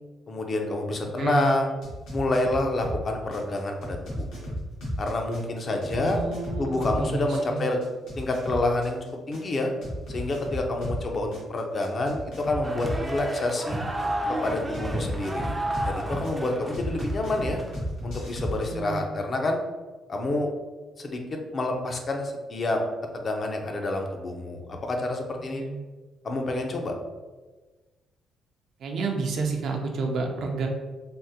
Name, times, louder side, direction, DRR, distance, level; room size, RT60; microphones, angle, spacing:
voice 1, 0.3-1.7 2.1-4.5 5.0-6.2 6.6-7.8 8.2-9.0 9.3-9.7 10.1-13.8 14.4-17.6 18.0-19.6 20.1-20.5 21.0-21.2 21.5-22.8 23.1-25.6 26.2-26.9, left 2 dB, 40° left, 3 dB, 0.5 m, -28 dB
voice 2, 1.2-1.6 2.2-2.3 5.9-7.6 18.6-19.1 25.6-25.7 28.8-30.7, right 4 dB, 70° right, 2 dB, 0.5 m, -30 dB
sound 1, 1.8-3.0 3.3-7.0 7.3-11.0 11.3-13.1 14.7-16.3 16.7-18.7, equal, 85° left, 1.1 m, -33 dB
sound 2, 12.6-17.8, right 1 dB, 15° right, 0.4 m, -32 dB
3.5 x 2.1 x 2.7 m, 1.3 s
cardioid pair, 90°, 0 cm